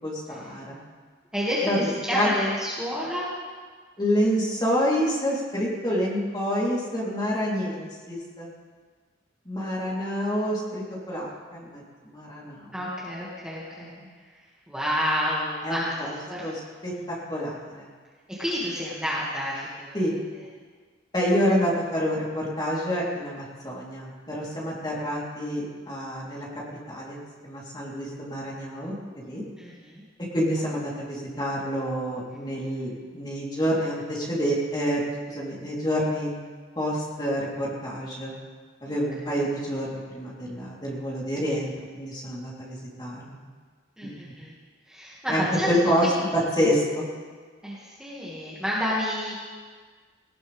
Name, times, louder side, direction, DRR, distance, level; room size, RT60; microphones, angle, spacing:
voice 1, 0.0-0.8 1.6-1.8 2.1-2.3 4.0-8.5 9.5-12.8 13.8-14.1 15.6-16.2 16.4-17.9 19.9-20.2 21.1-26.5 26.9-27.2 27.4-28.9 29.2-29.4 30.3-35.0 35.3-36.3 36.8-38.3 38.8-43.4 45.3-47.1, equal, 20° left, -6 dB, 3.7 m, -28 dB
voice 2, 1.3-3.4 12.7-13.9 14.7-16.5 18.3-20.0 29.6-30.0 38.9-39.0 39.3-39.4 44.0-44.5 44.9-46.2 47.6-49.3, equal, 5° right, -8 dB, 2.2 m, -30 dB
19.0 x 18.5 x 3.6 m, 1.5 s
head